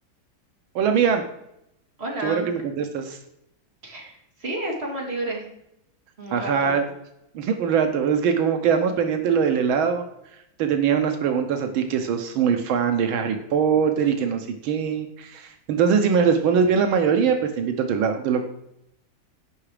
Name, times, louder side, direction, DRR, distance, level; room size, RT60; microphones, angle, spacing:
voice 1, 0.8-1.2 2.2-3.2 6.3-6.8 7.4-10.0 10.6-18.5, right 7 dB, 85° right, 5 dB, 1.7 m, -22 dB
voice 2, 2.0-2.5 3.8-5.5 6.2-6.8, right 1 dB, 30° right, -2 dB, 3.4 m, -31 dB
16.0 x 5.8 x 5.0 m, 0.80 s
omnidirectional pair, 2.2 m